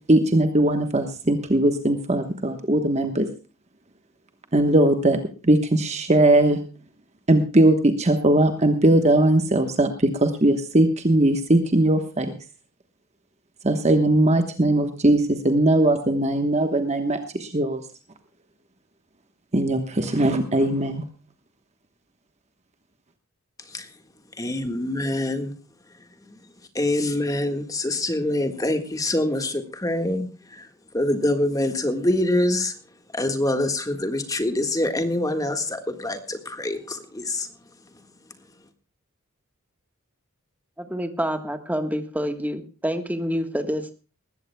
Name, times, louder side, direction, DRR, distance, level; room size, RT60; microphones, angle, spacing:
voice 1, 0.1-3.3 4.5-5.2 5.4-6.6 7.3-12.4 13.6-17.8 19.5-21.0, right 1 dB, 30° right, 7 dB, 1.2 m, -20 dB
voice 2, 24.4-25.5 26.8-30.3 30.9-32.7 33.1-37.5, left 1 dB, 15° left, 7 dB, 1.6 m, -25 dB
voice 3, 40.8-44.0, equal, 5° right, 8 dB, 1.3 m, -27 dB
20.0 x 15.5 x 2.2 m, 0.36 s
head